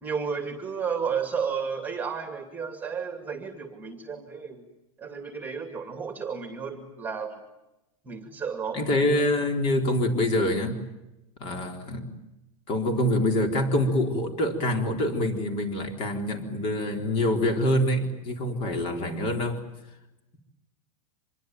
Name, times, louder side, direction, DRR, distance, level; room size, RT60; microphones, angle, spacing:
voice 1, 0.0-4.6 5.0-7.4 8.1-8.8, right 6 dB, 10° right, 6 dB, 2.4 m, -32 dB
voice 2, 8.7-10.8 11.4-12.1 12.7-19.6, left 1 dB, 30° left, 5 dB, 4.1 m, -25 dB
25.5 x 22.0 x 9.2 m, 0.93 s
supercardioid pair, 160°, 18 cm